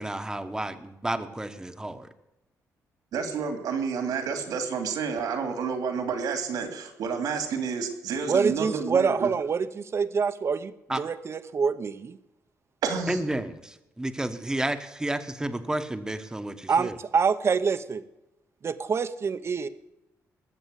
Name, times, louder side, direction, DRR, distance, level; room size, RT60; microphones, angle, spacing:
voice 1, 0.0-2.1 10.9-11.0 13.1-17.0, right 1 dB, 10° right, 8 dB, 1.2 m, -31 dB
voice 2, 3.1-9.3 12.8-13.2, right 5 dB, 85° right, 6 dB, 2.7 m, -30 dB
voice 3, 8.3-10.7 11.0-12.2 16.7-18.0 18.6-19.7, right 5 dB, 45° right, 12 dB, 0.9 m, -26 dB
19.5 x 7.2 x 8.2 m, 0.94 s
cardioid pair, 95°, 6 cm